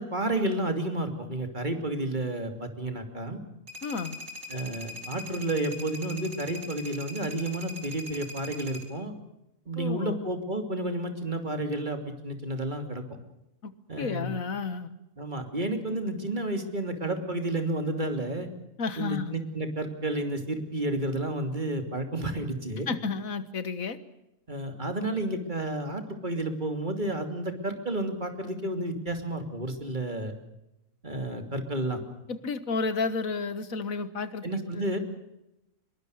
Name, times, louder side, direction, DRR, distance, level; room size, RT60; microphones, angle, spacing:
voice 1, 0.0-3.4 4.5-9.1 9.7-13.0 13.9-14.4 15.2-18.5 19.0-22.9 24.5-30.3 31.0-32.0 34.4-35.0, right 1 dB, 35° right, 6 dB, 3.1 m, -31 dB
sound 1, 3.7-8.8, left 1 dB, 75° right, 3.9 m, -41 dB
voice 2, 3.8-4.2 9.8-10.2 13.6-13.7 14.0-14.9 18.8-19.3 22.9-24.0 32.3-34.9, left 4 dB, 85° left, 13 dB, 1.9 m, -32 dB
24.0 x 22.5 x 6.5 m, 0.88 s
omnidirectional pair, 1.4 m